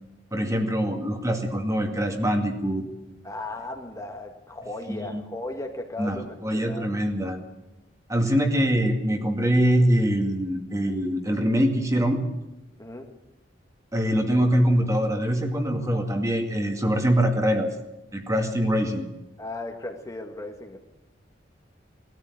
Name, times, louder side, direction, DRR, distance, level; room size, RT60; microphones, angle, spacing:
voice 1, 0.3-2.9 4.9-5.2 6.0-7.4 8.1-12.2 13.9-17.7 18.1-19.1, equal, 20° right, 4 dB, 2.2 m, -23 dB
voice 2, 3.2-6.9 12.8-13.1 19.4-20.8, left 2 dB, 20° left, 3 dB, 1.8 m, -36 dB
20.0 x 14.0 x 9.6 m, 0.95 s
head